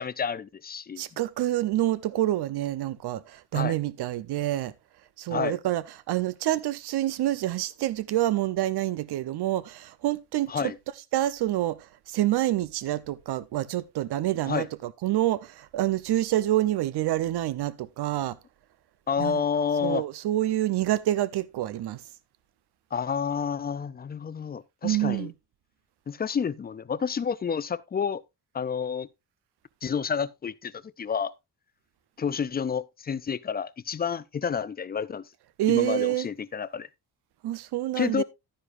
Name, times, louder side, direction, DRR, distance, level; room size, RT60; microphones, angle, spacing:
voice 1, 0.0-1.0 3.5-3.8 5.3-5.6 10.5-10.7 14.5-14.7 19.1-20.0 22.9-25.3 26.1-28.2 28.5-29.1 29.8-30.7 31.0-31.3 32.2-35.2 35.7-36.9 38.0-38.2, left 6 dB, 25° left, 0.4 m, -29 dB
voice 2, 1.0-4.7 5.2-10.7 11.1-18.4 19.2-19.4 19.8-22.0 24.8-25.3 35.6-36.3 37.4-38.2, right 14 dB, 75° right, 0.8 m, -27 dB
11.5 x 9.8 x 2.5 m
cardioid pair, 110°, 40 cm